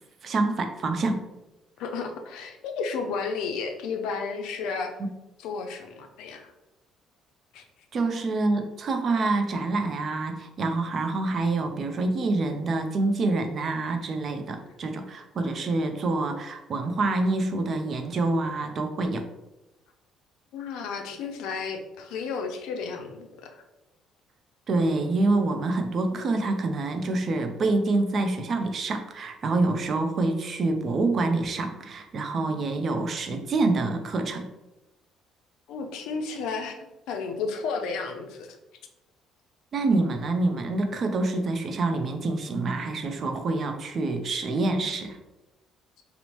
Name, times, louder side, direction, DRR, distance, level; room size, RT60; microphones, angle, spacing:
voice 1, 0.2-1.2 7.9-19.2 24.7-34.5 39.7-45.2, right 2 dB, 50° right, 6 dB, 0.4 m, -26 dB
voice 2, 1.8-5.0 5.4-6.5 7.5-7.6 20.5-23.6 35.7-36.8 37.1-38.6, left 5 dB, 75° left, 4 dB, 0.4 m, -32 dB
2.9 x 2.0 x 2.9 m, 0.99 s
supercardioid pair, 70°, 0 cm